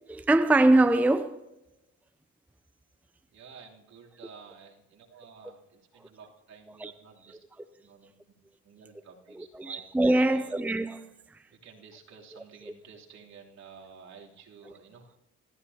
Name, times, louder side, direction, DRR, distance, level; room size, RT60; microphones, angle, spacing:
voice 1, 0.1-1.4 6.8-6.9 9.4-11.0, right 2 dB, 5° right, 0.5 m, -23 dB
voice 2, 3.3-7.4 7.8-8.1 8.6-9.8 10.2-10.5 11.5-15.2, right 5 dB, 60° right, 3.3 m, -51 dB
26.5 x 15.0 x 2.9 m
cardioid pair, 90°, 30 cm